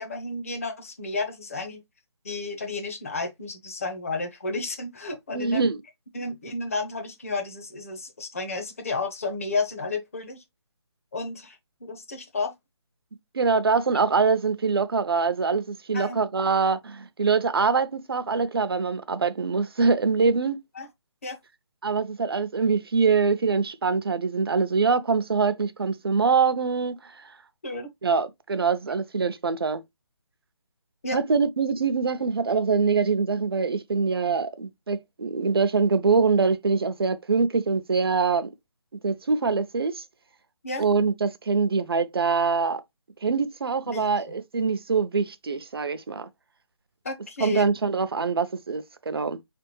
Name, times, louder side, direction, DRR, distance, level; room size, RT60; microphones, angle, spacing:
voice 1, 0.0-1.8 2.2-5.7 6.1-10.4 11.1-12.5 15.9-16.3 20.7-20.9 21.2-21.4 27.6-27.9 31.0-31.2 40.6-40.9 43.9-44.4 47.0-47.7, left 3 dB, 30° left, 0.9 m, -32 dB
voice 2, 5.3-5.8 13.3-20.6 21.8-27.1 28.0-29.8 31.1-38.5 39.0-40.0 40.8-42.8 43.2-46.3 47.4-49.4, right 5 dB, 55° right, 0.6 m, -24 dB
4.6 x 3.4 x 3.0 m
hypercardioid pair, 175°, 15 cm